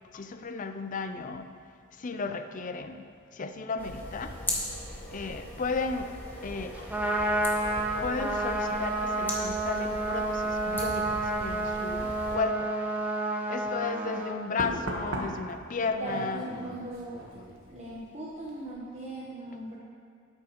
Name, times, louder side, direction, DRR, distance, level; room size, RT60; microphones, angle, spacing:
voice 1, 0.1-1.5 2.0-3.0 3.3-4.4 5.1-6.1 6.4-6.9 8.0-12.7 13.5-16.4, left 4 dB, 40° left, 8 dB, 0.5 m, -34 dB
sound 1, 3.8-12.4, left 1 dB, 10° left, 1.3 m, -39 dB
Trumpet, 6.7-14.3, right 2 dB, 10° right, 0.8 m, -30 dB
Knock, 13.5-13.7 14.6-18.1 18.3-18.7, right 1 dB, 70° right, 1.4 m, -39 dB
voice 2, 16.0-17.2 17.7-19.8, right 1 dB, 35° right, -6 dB, 1.1 m, -38 dB
12.5 x 8.6 x 3.1 m, 2.2 s
head